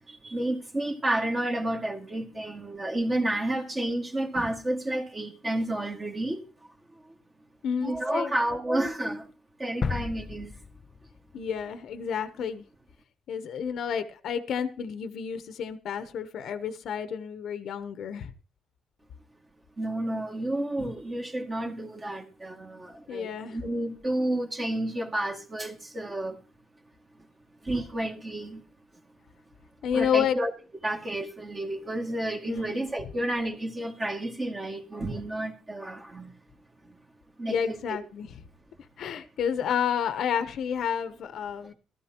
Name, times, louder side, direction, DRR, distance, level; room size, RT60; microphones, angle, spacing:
voice 1, 0.1-6.7 7.8-9.3 9.6-10.5 19.8-26.4 27.6-28.6 29.9-30.5 30.8-36.3 36.8-37.0 37.4-37.8, right 1 dB, 25° right, 2.1 m, -31 dB
voice 2, 7.6-8.3 11.3-12.6 13.3-18.3 23.1-23.6 29.8-30.4 32.4-32.9 37.5-38.3 39.0-41.7, left 8 dB, 70° left, 0.8 m, -30 dB
sound 1, 9.8-11.7 12.1-12.2, left 5 dB, 45° left, 0.5 m, -34 dB
15.0 x 13.0 x 2.9 m
cardioid pair, 90°, 0 cm